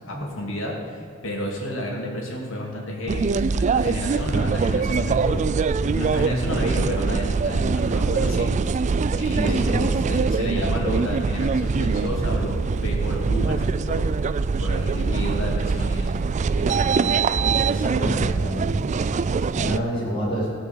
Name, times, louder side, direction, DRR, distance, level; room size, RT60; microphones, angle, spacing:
voice 1, 0.1-5.4 5.9-8.5 9.2-14.1 14.6-16.2 16.6-17.3, left 1 dB, 65° left, -1 dB, 2.9 m, -31 dB
sound 1, 3.1-19.8, right 4 dB, 35° right, 0.3 m, -23 dB
voice 2, 9.3-9.8 17.6-18.9 19.5-20.5, equal, 25° left, -6 dB, 4.1 m, -27 dB
16.0 x 6.7 x 8.3 m, 2.3 s
head